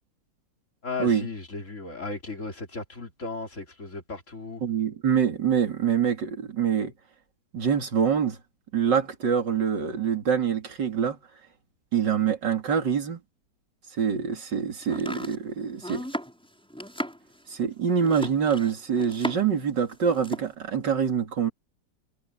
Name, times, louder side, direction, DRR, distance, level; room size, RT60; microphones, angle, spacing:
voice 1, 0.8-4.6, left 3 dB, 40° left, 3.9 m, -35 dB
voice 2, 4.6-6.9 7.5-8.4 8.7-11.2 11.9-13.2 14.0-16.1 17.5-21.5, right 7 dB, 75° right, 3.1 m, -25 dB
Domestic sounds home sounds, 14.8-19.6 19.9-20.5, equal, 5° left, 6.4 m, -36 dB
omnidirectional pair, 1.9 m